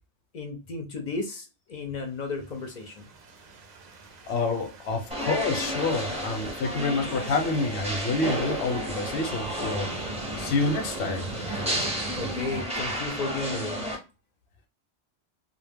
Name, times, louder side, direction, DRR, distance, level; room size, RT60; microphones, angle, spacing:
voice 1, 0.3-3.1 12.2-13.9, left 3 dB, 55° left, 0.5 m, -34 dB
sound 1, 2.3-12.6, right 3 dB, 55° right, 0.5 m, -43 dB
voice 2, 4.3-9.9 10.4-11.3, left 3 dB, 85° left, 0.9 m, -28 dB
sound 2, 5.1-14.0, equal, 10° right, 0.5 m, -32 dB
2.2 x 2.1 x 3.3 m
omnidirectional pair, 1.1 m